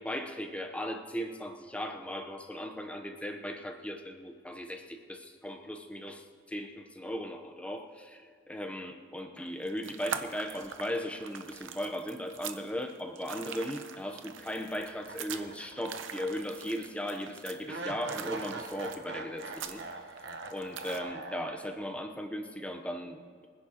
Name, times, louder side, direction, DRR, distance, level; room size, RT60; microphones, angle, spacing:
voice 1, 0.0-19.8 20.5-23.5, equal, 5° left, 4 dB, 0.8 m, -37 dB
sound 1, 9.5-21.0, right 7 dB, 85° right, 0.7 m, -43 dB
sound 2, 15.1-16.4 16.7-16.8 17.7-22.0, right 3 dB, 60° right, 1.1 m, -42 dB
25.0 x 10.0 x 2.9 m, 2.1 s
head